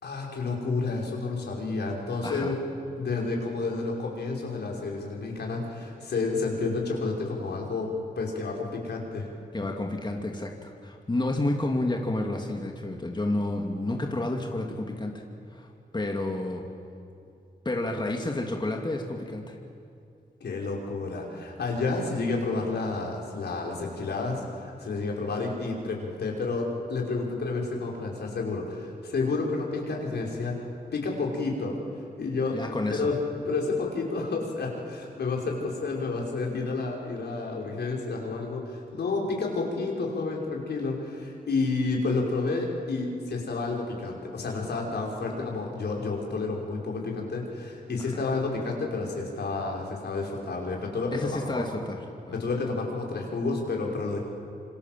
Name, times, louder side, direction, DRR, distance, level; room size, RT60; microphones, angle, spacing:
voice 1, 0.0-2.6 3.0-7.9 8.2-9.3 20.4-30.6 30.9-31.8 32.2-32.6 32.9-33.2 33.5-51.6 52.3-54.2, left 3 dB, 75° left, -1 dB, 5.6 m, -30 dB
voice 2, 2.2-2.5 9.5-15.1 15.5-16.6 17.6-19.6 32.5-33.1 48.1-48.2 51.1-52.0 52.3-52.4, left 2 dB, 25° left, 1 dB, 2.7 m, -30 dB
27.0 x 25.5 x 7.7 m, 2.5 s
cardioid pair, 75°, 17 cm